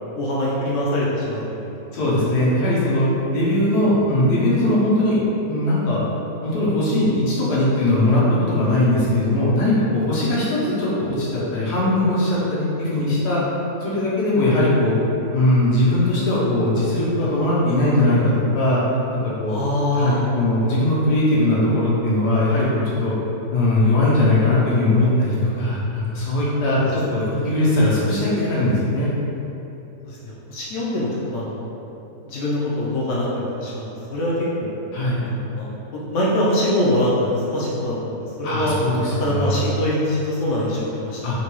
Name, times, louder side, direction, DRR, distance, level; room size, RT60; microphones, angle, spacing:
voice 1, 0.1-1.7 2.1-2.2 19.5-20.2 26.7-27.0 30.0-31.7 32.2-34.3 34.6-34.7 35.2-38.7 39.2-41.2, left 1 dB, 65° left, -6 dB, 0.8 m, -24 dB
voice 2, 1.9-3.1 3.3-5.2 5.5-6.0 6.4-13.4 13.8-14.9 15.3-18.8 19.1-19.5 19.9-23.1 23.5-29.1 34.9-35.2 38.4-39.6 41.2-41.4, left 1 dB, 85° left, -8 dB, 1.4 m, -20 dB
3.9 x 2.2 x 2.9 m, 2.9 s
omnidirectional pair, 1.7 m